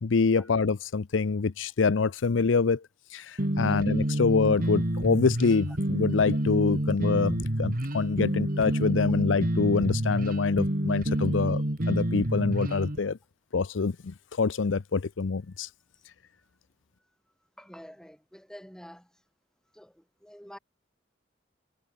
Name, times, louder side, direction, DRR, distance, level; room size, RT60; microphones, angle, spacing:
voice 1, 0.0-2.8 3.1-13.2 13.5-15.7, left 4 dB, 80° left, 0.6 m, -26 dB
sound 1, 3.4-13.0, right 1 dB, 50° right, 2.4 m, -28 dB
voice 2, 17.6-19.1 19.7-20.6, equal, 5° left, 7.8 m, -48 dB
head